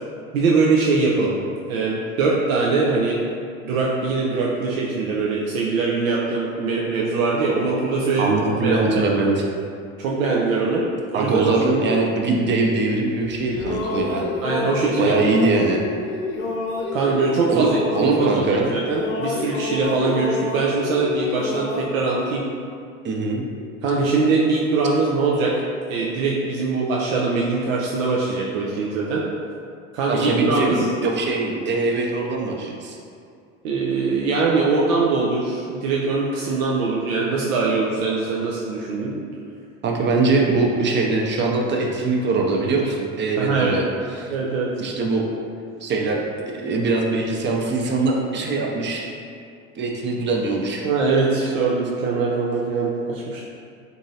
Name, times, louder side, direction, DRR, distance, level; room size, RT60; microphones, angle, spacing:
voice 1, 0.3-1.4 1.7-3.2 3.6-9.0 10.0-10.8 11.1-11.5 14.4-15.3 16.9-22.4 23.8-25.5 25.9-29.2 29.9-30.6 33.6-39.1 43.4-43.8 44.3-44.8 50.8-53.5, right 4 dB, 80° right, -4 dB, 0.5 m, -22 dB
voice 2, 8.2-9.5 11.1-14.2 15.0-15.8 17.5-18.7 23.0-23.4 30.1-33.0 39.8-44.4 44.8-45.3 45.8-49.1 49.8-50.9, right 3 dB, 30° right, 0 dB, 0.5 m, -22 dB
sound 1, 13.2-18.6 18.9-21.8, left 3 dB, 75° left, 0.6 m, -29 dB
3.7 x 2.7 x 2.6 m, 2.3 s
hypercardioid pair, 65°, 40 cm